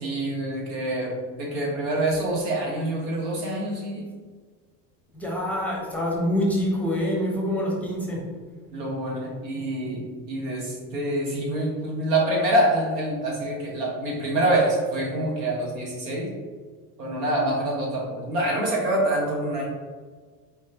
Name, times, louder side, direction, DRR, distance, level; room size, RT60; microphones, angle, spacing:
voice 1, 0.0-4.0 8.7-16.3 17.0-19.7, right 1 dB, 85° right, -2 dB, 1.4 m, -26 dB
voice 2, 5.1-8.2, equal, 5° left, -4 dB, 0.9 m, -26 dB
4.1 x 3.1 x 2.8 m, 1.5 s
supercardioid pair, 100°, 47 cm